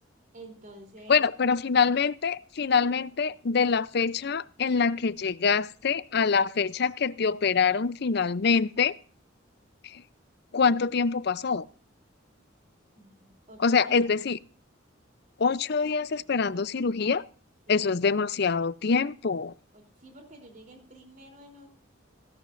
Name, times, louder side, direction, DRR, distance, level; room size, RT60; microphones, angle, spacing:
voice 1, 0.3-1.3 12.9-14.1 17.7-17.9 19.7-21.7, right 1 dB, 40° right, 3.3 m, -50 dB
voice 2, 1.1-8.9 9.8-10.0 10.5-11.7 13.6-14.4 15.4-17.2 17.7-19.5, left 5 dB, 55° left, 0.6 m, -25 dB
16.5 x 15.5 x 2.6 m
head